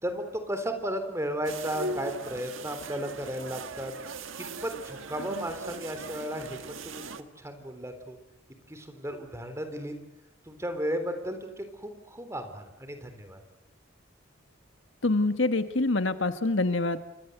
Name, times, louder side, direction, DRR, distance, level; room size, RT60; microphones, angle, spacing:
voice 1, 0.0-3.9 4.4-8.2 8.7-9.9 10.5-13.4, equal, 15° right, 7 dB, 3.7 m, -34 dB
sound 1, 1.4-7.2, right 2 dB, 75° right, 1.7 m, -39 dB
voice 2, 15.0-17.0, left 2 dB, 65° left, 9 dB, 1.5 m, -25 dB
29.0 x 26.0 x 8.0 m, 0.86 s
head